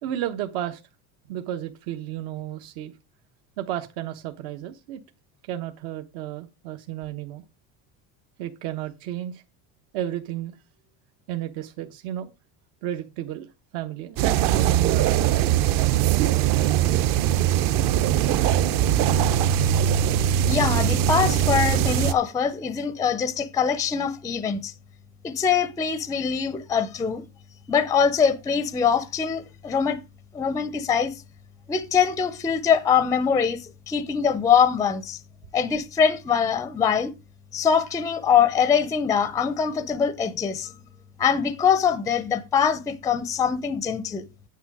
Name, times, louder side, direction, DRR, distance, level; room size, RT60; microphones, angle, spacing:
voice 1, 0.0-0.8 1.3-2.9 3.6-5.0 5.5-7.4 8.4-9.4 9.9-10.5 11.3-12.3 12.8-13.5 13.7-17.6, right 12 dB, 80° right, 1.3 m, -33 dB
sound 1, 14.2-22.1, right 10 dB, 55° right, 0.8 m, -21 dB
voice 2, 20.5-24.7 25.2-27.2 27.7-30.0 30.3-31.1 31.7-33.6 33.9-35.2 35.5-37.1 37.5-40.7 41.2-44.3, left 7 dB, 10° left, 0.4 m, -23 dB
9.1 x 8.1 x 4.8 m
cardioid pair, 170°, 39 cm